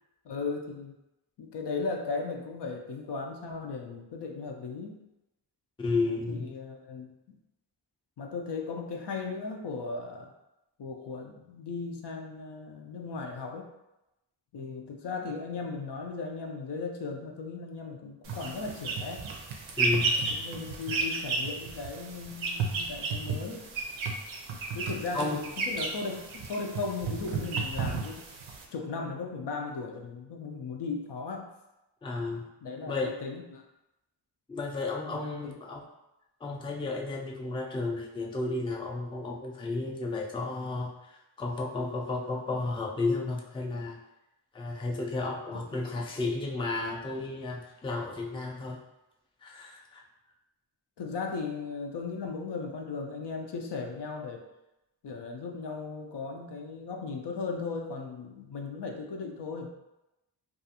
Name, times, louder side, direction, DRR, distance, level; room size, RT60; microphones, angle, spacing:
voice 1, 0.3-0.9 1.4-5.0 6.1-7.4 8.2-10.3 10.8-13.7 14.5-19.2 20.3-23.6 24.7-28.3 28.7-31.5 32.6-33.6 35.2-35.6 45.5-45.6 51.0-54.5 55.0-59.7, left 4 dB, 65° left, 2 dB, 0.5 m, -37 dB
voice 2, 5.8-6.5 19.8-20.1 25.1-25.4 32.0-32.4 32.9-33.1 34.5-35.8 36.4-44.0 44.5-48.8 49.4-50.0, left 3 dB, 15° left, 0 dB, 0.3 m, -33 dB
sound 1, 18.3-28.7, right 3 dB, 90° right, 0.5 m, -33 dB
2.4 x 2.3 x 2.7 m, 0.93 s
cardioid pair, 40°, 45 cm